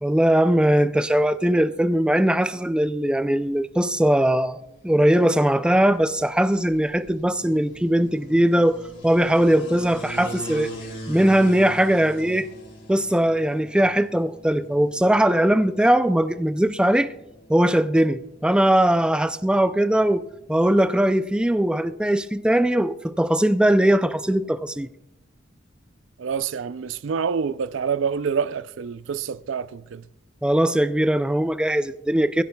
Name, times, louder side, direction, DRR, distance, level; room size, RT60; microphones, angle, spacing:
voice 1, 0.0-10.7 11.1-12.5 12.9-17.1 17.5-24.9 30.4-32.4, right 1 dB, 5° right, 0.4 m, -20 dB
sound 1, 3.4-21.5, equal, 70° left, 4.8 m, -43 dB
voice 2, 26.2-30.0, right 6 dB, 75° right, 0.4 m, -27 dB
23.5 x 16.0 x 2.3 m
head